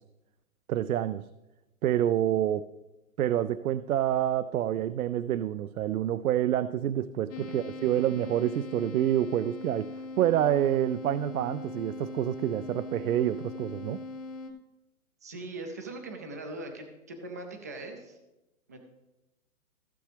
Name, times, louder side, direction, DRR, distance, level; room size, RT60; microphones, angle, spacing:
voice 1, 0.7-1.2 1.8-2.7 3.2-9.9 10.2-14.0, right 11 dB, 80° right, 14 dB, 0.5 m, -27 dB
sound 1, 7.3-14.5, left 3 dB, 25° left, 1.0 m, -41 dB
voice 2, 15.2-18.2 18.7-18.8, right 2 dB, 15° right, 4 dB, 0.4 m, -40 dB
15.0 x 7.1 x 3.4 m, 1.0 s
hypercardioid pair, 150°, 42 cm